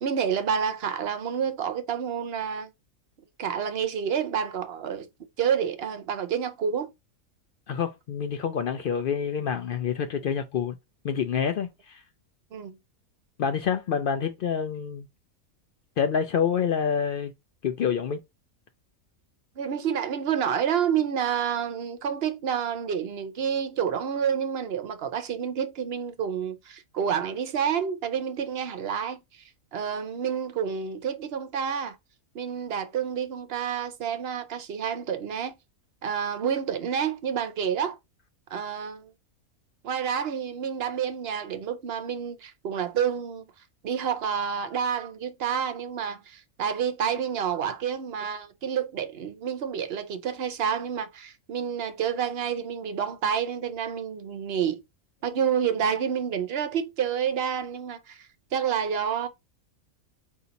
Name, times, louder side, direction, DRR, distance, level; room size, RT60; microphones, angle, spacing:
voice 1, 0.0-2.7 3.4-5.1 5.4-6.9 12.5-12.8 19.6-29.4 29.7-32.0 32.3-35.6 36.0-38.0 38.5-39.1 39.8-43.4 43.8-54.8 55.2-59.3, right 8 dB, 55° right, 0.8 m, -29 dB
voice 2, 7.7-10.8 11.0-12.0 13.4-15.1 16.0-17.3 17.6-18.2, left 7 dB, 75° left, 0.4 m, -27 dB
4.2 x 2.7 x 3.9 m
omnidirectional pair, 1.5 m